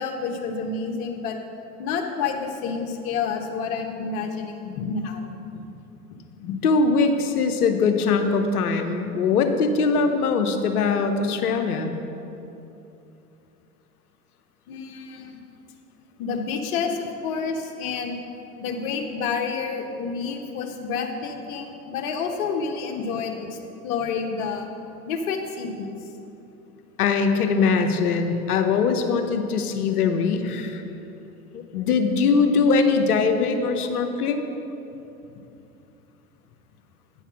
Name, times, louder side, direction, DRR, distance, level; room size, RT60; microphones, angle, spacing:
voice 1, 0.0-1.4 1.8-5.3 6.4-6.6 14.7-15.4 16.2-18.2 18.6-23.6 23.8-24.7 25.1-25.9 33.8-33.9, left 5 dB, 60° left, 3 dB, 1.2 m, -29 dB
voice 2, 6.6-11.9 27.0-30.8 31.5-34.4, left 4 dB, 80° left, 6 dB, 0.9 m, -22 dB
9.4 x 5.8 x 5.8 m, 2.9 s
hypercardioid pair, 85°, 45 cm